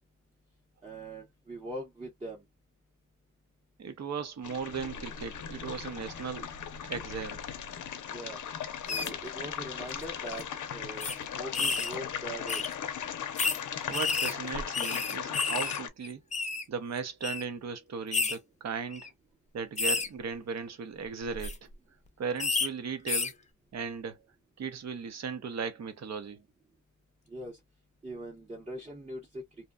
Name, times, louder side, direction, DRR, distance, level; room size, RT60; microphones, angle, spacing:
voice 1, 0.8-2.4 8.1-8.4 8.9-11.1 11.3-12.6 27.3-27.6 28.0-29.7, right 1 dB, 20° right, 0.8 m, -42 dB
voice 2, 3.8-6.5 6.9-7.4 13.9-16.2 16.7-19.1 19.5-21.7 22.2-23.3 23.7-24.2 24.6-26.4, right 5 dB, 55° right, 0.7 m, -37 dB
sound 1, 4.4-15.9, left 8 dB, 75° left, 0.6 m, -38 dB
sound 2, 8.9-9.1 9.9-10.0 10.3-10.4 11.0-11.1 11.5-11.9 12.5-12.7 13.4-13.6 13.9-15.8 16.0-16.6 17.2-17.4 18.1-18.3 18.9-19.1 19.8-20.1 21.2-21.5 22.4-22.7 23.1-23.3, left 4 dB, 25° left, 0.5 m, -30 dB
2.7 x 2.2 x 2.2 m
wide cardioid pair, 150°, 31 cm